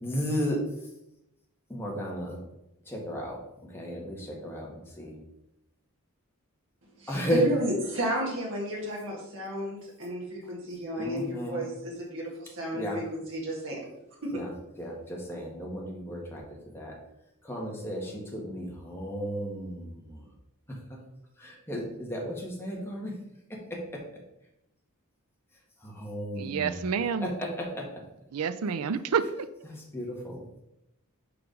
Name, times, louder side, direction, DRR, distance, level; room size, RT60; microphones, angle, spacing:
voice 1, 0.0-0.9 1.7-2.4 2.8-5.2 7.1-7.4 11.0-11.6 12.7-13.0 14.3-16.4 16.7-16.9 17.4-20.3 20.7-20.8 21.4-23.1 23.5-24.0 25.8-26.8 27.2-27.8 29.6-30.6, equal, 10° left, -2 dB, 1.5 m, -34 dB
voice 2, 7.0-12.8 13.1-13.8 14.2-14.3, equal, 60° right, -3 dB, 1.8 m, -33 dB
voice 3, 26.4-27.3 28.3-29.5, right 6 dB, 75° right, 13 dB, 0.4 m, -29 dB
4.9 x 4.8 x 5.1 m, 0.85 s
head